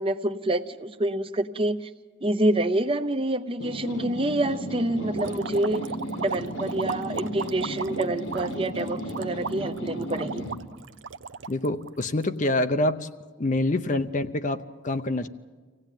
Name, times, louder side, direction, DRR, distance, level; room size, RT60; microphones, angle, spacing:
voice 1, 0.0-1.9 2.2-5.8 6.2-10.4, right 1 dB, 30° right, 10 dB, 0.7 m, -27 dB
sound 1, 3.6-10.7, equal, 80° left, 2.2 m, -34 dB
sound 2, 5.1-12.5, right 5 dB, 70° right, 0.6 m, -36 dB
voice 2, 11.5-13.1 13.4-15.3, left 2 dB, 40° left, 10 dB, 0.7 m, -26 dB
25.0 x 16.5 x 9.1 m, 1.4 s
head